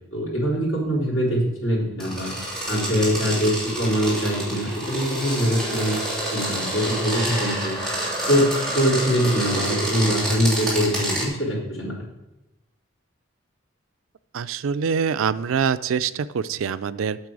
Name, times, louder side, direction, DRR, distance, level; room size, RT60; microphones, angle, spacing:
voice 1, 0.1-2.3 2.7-6.0 6.3-7.7 8.3-12.0, equal, 85° left, -5 dB, 3.7 m, -23 dB
sound 1, 2.0-11.3, right 1 dB, 5° left, 3.1 m, -28 dB
voice 2, 14.3-17.2, right 6 dB, 85° right, 14 dB, 0.4 m, -24 dB
8.9 x 6.9 x 4.8 m, 0.97 s
head